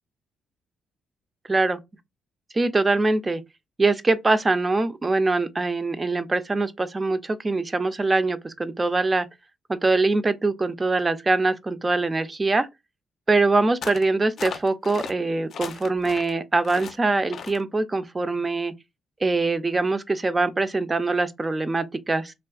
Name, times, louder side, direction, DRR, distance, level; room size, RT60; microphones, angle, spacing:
voice 1, 1.5-1.8 2.5-3.4 3.8-9.3 9.7-12.7 13.3-18.7 19.2-22.3, right 3 dB, 25° right, 0.5 m, -23 dB
sound 1, 13.8-14.1 14.4-15.1 15.5-16.3 16.6-17.0 17.3-17.6, left 7 dB, 60° left, 0.4 m, -36 dB
3.5 x 2.7 x 2.3 m
cardioid pair, 90°, 0 cm